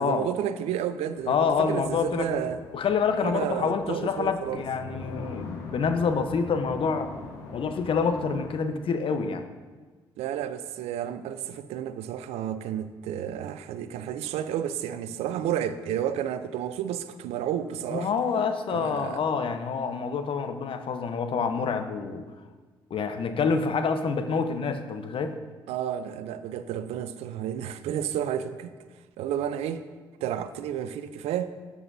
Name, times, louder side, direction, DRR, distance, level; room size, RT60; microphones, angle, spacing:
voice 1, 0.0-2.6 3.2-4.6 10.2-18.1 18.7-19.2 25.7-28.7 29.2-29.8 30.2-31.5, right 10 dB, 70° right, 12 dB, 0.5 m, -31 dB
sound 1, 1.1-8.6, left 2 dB, 80° left, 1.2 m, -43 dB
voice 2, 1.3-2.4 2.7-7.1 7.5-9.4 17.9-22.2 22.9-25.3, left 5 dB, 55° left, 8 dB, 0.9 m, -27 dB
13.0 x 8.5 x 2.7 m, 1.4 s
hypercardioid pair, 50°, 11 cm